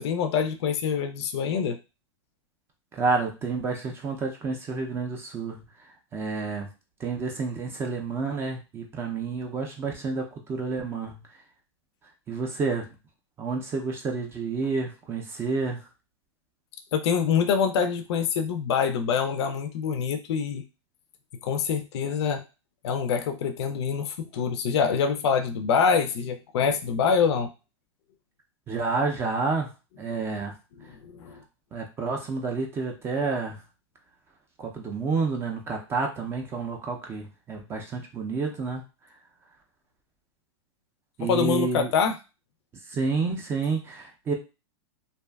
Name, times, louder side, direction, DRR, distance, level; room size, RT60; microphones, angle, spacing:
voice 1, 0.0-1.8 16.9-20.6 21.4-22.4 22.8-27.5 31.0-31.4 41.2-42.2, left 6 dB, 65° left, 7 dB, 0.4 m, -25 dB
voice 2, 2.9-5.9 6.1-6.7 7.0-11.2 12.3-12.9 13.4-15.8 28.7-29.7 30.0-30.5 31.7-33.6 34.6-38.8 41.2-41.9 42.9-44.3, right 4 dB, 15° right, 3 dB, 0.3 m, -29 dB
2.5 x 2.2 x 2.2 m, 0.30 s
hypercardioid pair, 140°, 15 cm